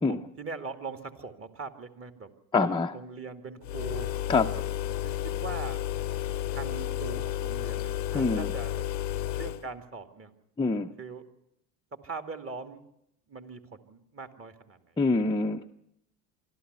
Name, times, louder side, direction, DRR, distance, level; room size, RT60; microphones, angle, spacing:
voice 1, 0.1-2.3 2.6-4.1 4.9-5.8 6.5-8.8 9.4-10.3 11.0-11.2 12.0-12.9 13.3-15.0, right 4 dB, 25° right, 7 dB, 2.4 m, -41 dB
voice 2, 2.5-2.9 4.3-4.5 8.1-8.5 10.6-10.9 15.0-15.7, left 3 dB, 10° left, 3 dB, 0.7 m, -25 dB
sound 1, 3.6-9.7, left 13 dB, 85° left, 1.0 m, -32 dB
26.0 x 13.0 x 8.2 m, 0.80 s
hypercardioid pair, 70°, 49 cm